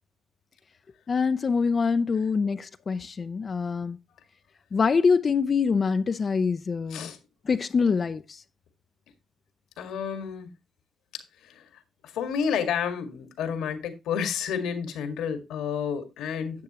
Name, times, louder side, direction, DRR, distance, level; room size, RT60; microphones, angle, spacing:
voice 1, 1.1-4.0 4.7-7.1 7.5-8.4, left 5 dB, 40° left, 0.5 m, -25 dB
voice 2, 9.8-10.5 11.1-16.6, left 7 dB, 85° left, 1.8 m, -31 dB
10.5 x 7.6 x 2.9 m
cardioid pair, 90°, 0 cm